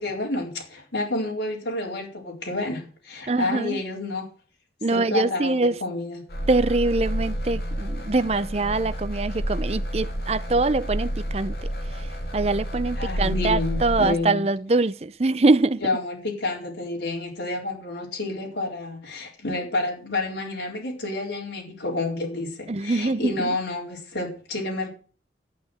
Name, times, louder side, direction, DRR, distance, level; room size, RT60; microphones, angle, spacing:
voice 1, 0.0-4.3 4.9-6.2 13.0-14.4 15.8-24.9, left 2 dB, 85° left, 4.4 m, -29 dB
voice 2, 3.3-3.8 4.8-5.8 6.5-11.7 12.3-15.8 22.7-23.6, right 3 dB, 35° right, 0.6 m, -23 dB
sound 1, 6.3-14.1, equal, 60° left, 2.7 m, -29 dB
12.0 x 8.6 x 7.9 m
head